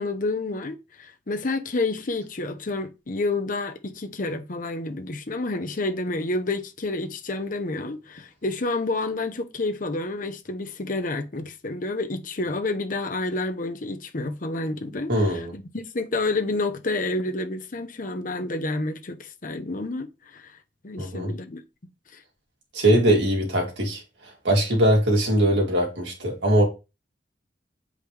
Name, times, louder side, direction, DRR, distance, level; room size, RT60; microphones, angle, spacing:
voice 1, 0.0-20.6 20.8-21.6 22.1-22.2, left 2 dB, 45° left, 0.8 m, -29 dB
voice 2, 15.1-15.5 21.0-21.3 22.7-24.0 24.4-26.6, right 1 dB, 75° right, 2.7 m, -21 dB
7.8 x 5.1 x 3.4 m
head